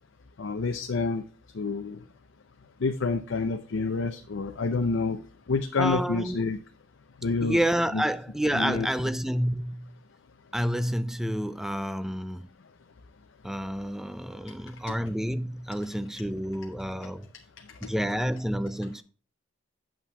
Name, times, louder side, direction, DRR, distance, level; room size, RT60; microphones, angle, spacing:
voice 1, 0.4-1.2 1.5-2.0 2.8-5.2 5.5-6.6 7.2-7.6 7.9-8.0 8.5-8.9 17.0-17.1, left 4 dB, 75° left, 0.6 m, -28 dB
voice 2, 5.8-6.4 7.4-9.9 10.5-12.5 13.4-17.3 17.8-19.0, equal, ahead, 0.4 m, -29 dB
8.4 x 7.3 x 2.3 m
head